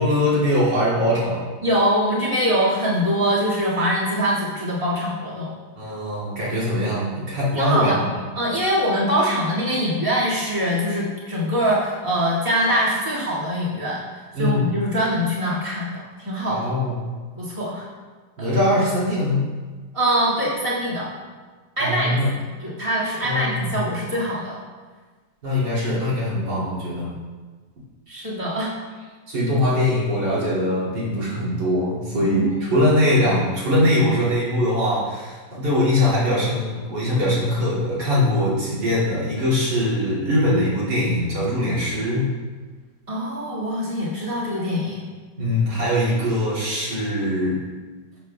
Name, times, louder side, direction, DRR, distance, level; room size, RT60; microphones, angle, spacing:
voice 1, 0.0-1.4 5.8-8.1 14.3-14.7 16.5-17.1 18.4-19.4 21.8-22.3 23.2-23.7 25.4-27.1 29.3-42.3 45.4-47.6, left 1 dB, 75° right, -8 dB, 3.1 m, -22 dB
voice 2, 1.6-5.5 7.5-8.0 8.3-14.0 14.4-16.6 17.4-17.9 18.4-18.5 19.9-21.1 21.8-22.1 22.6-24.6 28.1-28.7 32.1-32.7 43.1-45.0, equal, 15° right, -7 dB, 1.9 m, -23 dB
11.5 x 7.6 x 2.3 m, 1.4 s
omnidirectional pair, 1.9 m